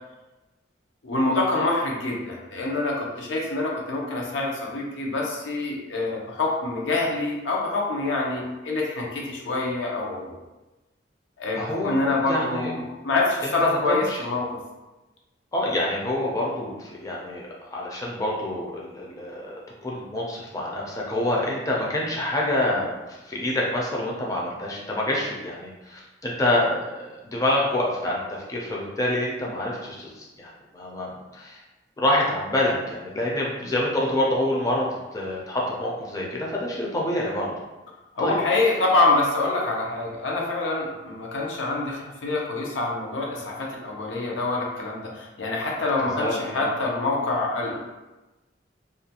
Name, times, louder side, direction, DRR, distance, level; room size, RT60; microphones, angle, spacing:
voice 1, 1.0-10.4 11.4-14.6 38.2-47.8, left 2 dB, 90° left, -2 dB, 0.6 m, -26 dB
voice 2, 11.5-12.7 13.4-14.2 15.5-22.9 23.2-31.6 32.0-37.5 38.2-38.3 46.0-46.7, left 1 dB, 20° left, -4 dB, 0.4 m, -27 dB
2.4 x 2.2 x 2.8 m, 1.1 s
head